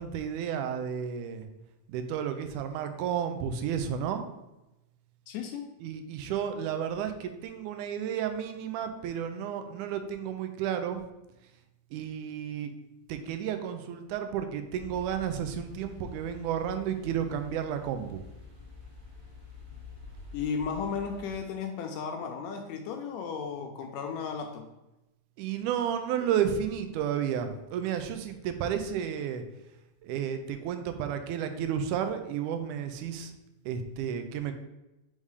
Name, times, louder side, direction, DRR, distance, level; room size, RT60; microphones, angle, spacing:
voice 1, 0.0-1.5 1.9-4.3 5.8-11.0 11.9-12.7 13.1-18.2 25.4-29.4 30.0-33.3 33.7-34.5, right 8 dB, 90° right, 8 dB, 2.1 m, -32 dB
voice 2, 5.3-5.7 20.3-24.7, left 6 dB, 80° left, 4 dB, 1.7 m, -34 dB
sound 1, 14.7-21.4, left 5 dB, 30° right, 1.7 m, -48 dB
5.4 x 3.6 x 4.8 m, 0.96 s
omnidirectional pair, 3.5 m